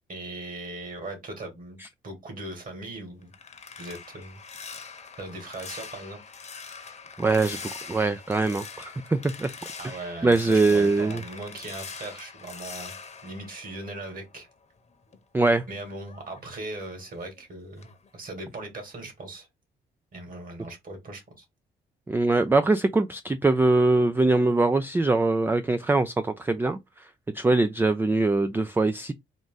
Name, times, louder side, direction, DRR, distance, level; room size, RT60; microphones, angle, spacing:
voice 1, 0.1-1.8 2.0-3.3 3.8-4.4 5.2-6.2 9.8-12.9 13.2-14.5 15.7-19.5 20.1-21.4, right 2 dB, 45° right, 2.2 m, -39 dB
sound 1, 2.8-14.4 14.8-17.4 17.8-18.1 18.5-18.7, left 5 dB, 35° left, 0.9 m, -43 dB
voice 2, 7.2-9.5 10.2-11.2 15.3-15.6 22.1-27.1 27.3-29.1, right 3 dB, 10° right, 0.3 m, -23 dB
3.7 x 2.5 x 3.8 m
cardioid pair, 90°, 20 cm